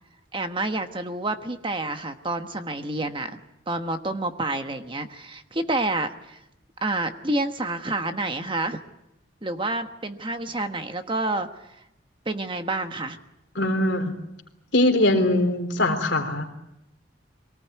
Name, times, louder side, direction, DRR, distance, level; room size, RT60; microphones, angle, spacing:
voice 1, 0.3-3.4 3.7-6.4 6.8-8.8 9.4-11.5 12.3-13.2, right 2 dB, 25° right, 7 dB, 1.2 m, -28 dB
voice 2, 13.6-14.1 14.7-16.4, left 1 dB, 60° left, 5 dB, 3.5 m, -21 dB
24.0 x 19.0 x 9.2 m, 0.85 s
head